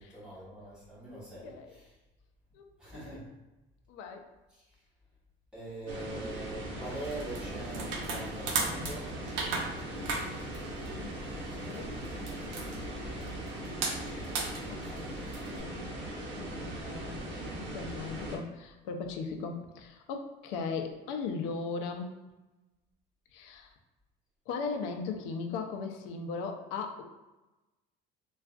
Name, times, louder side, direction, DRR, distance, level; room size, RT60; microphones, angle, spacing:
voice 1, 0.0-1.9 2.8-3.3 4.5-4.8 5.5-9.2 14.0-14.4 14.7-15.0, right 2 dB, 5° right, -9 dB, 1.0 m, -43 dB
voice 2, 1.1-1.7 2.5-2.6 2.9-3.2 3.9-4.3 11.6-12.1 12.4-12.8 14.7-15.1 15.5-22.2 23.3-23.7 24.5-27.0, left 4 dB, 85° left, 5 dB, 0.5 m, -38 dB
sound 1, 5.9-18.4, right 1 dB, 60° right, 0.8 m, -39 dB
sound 2, 7.0-15.6, right 4 dB, 85° right, 0.6 m, -37 dB
3.5 x 2.3 x 2.3 m, 1.1 s
cardioid pair, 170°, 20 cm